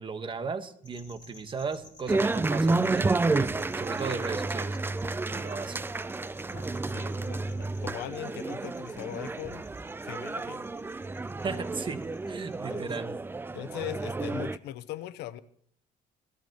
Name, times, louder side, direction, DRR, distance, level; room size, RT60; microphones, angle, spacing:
voice 1, 0.0-4.8 5.3-5.8 11.4-12.0 12.3-13.1, right 5 dB, 30° right, 9 dB, 1.2 m, -36 dB
sound 1, 0.8-12.9, left 3 dB, 25° left, 3.1 m, -55 dB
sound 2, 2.1-14.6, right 3 dB, 15° right, 0.4 m, -31 dB
voice 2, 6.5-9.7 10.0-10.6 12.7-12.9 13.5-15.4, left 13 dB, 85° left, 15 dB, 0.8 m, -40 dB
18.0 x 13.5 x 2.9 m, 0.64 s
cardioid pair, 110°, 17 cm